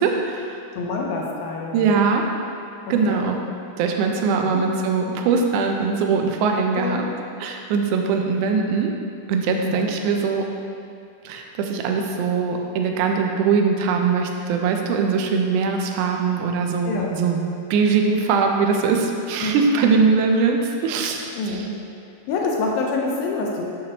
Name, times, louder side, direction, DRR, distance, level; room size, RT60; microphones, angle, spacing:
voice 1, 0.0-0.6 1.7-2.3 2.9-3.4 3.8-7.1 7.4-8.9 9.3-10.4 11.2-17.4 17.7-21.6, right 5 dB, 80° right, 2 dB, 1.8 m, -21 dB
voice 2, 0.8-2.0 3.1-3.2 4.4-4.6 6.8-7.0 9.6-9.9 16.9-17.1 19.4-19.6 21.3-21.7 22.0-23.6, left 3 dB, 80° left, -1 dB, 2.5 m, -26 dB
8.6 x 5.9 x 2.9 m, 2.5 s
omnidirectional pair, 4.2 m